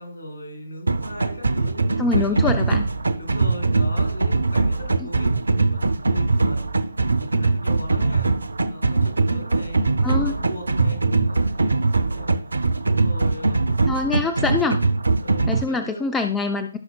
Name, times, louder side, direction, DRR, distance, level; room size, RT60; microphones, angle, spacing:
voice 1, 0.0-2.5 3.1-5.8 6.1-8.3 8.7-12.3 12.8-13.9 14.4-14.6 15.2-16.2, left 1 dB, 60° left, 2 dB, 4.0 m, -39 dB
sound 1, 0.9-15.6, right 3 dB, 75° right, 0.7 m, -21 dB
voice 2, 2.0-2.8 10.0-10.3 13.9-14.8 15.5-16.8, left 4 dB, 10° left, 7 dB, 0.5 m, -24 dB
17.0 x 5.7 x 2.4 m, 0.40 s
figure-of-eight pair, 140°, 0 cm